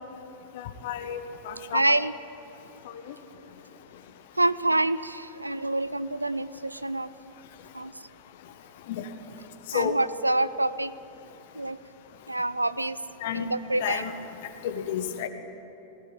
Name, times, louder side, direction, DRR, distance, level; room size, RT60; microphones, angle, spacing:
voice 1, 0.6-1.2 1.5-1.8 9.7-9.9 13.2-13.5 13.8-14.1 14.6-15.3, left 9 dB, 55° left, 8 dB, 1.4 m, -30 dB
voice 2, 1.7-2.1 4.4-7.1 7.7-7.9 9.7-10.9 11.5-11.8 12.3-13.0 13.3-14.0, right 2 dB, 85° right, 15 dB, 0.5 m, -26 dB
20.0 x 18.0 x 9.0 m, 2.9 s
figure-of-eight pair, 90°, 0 cm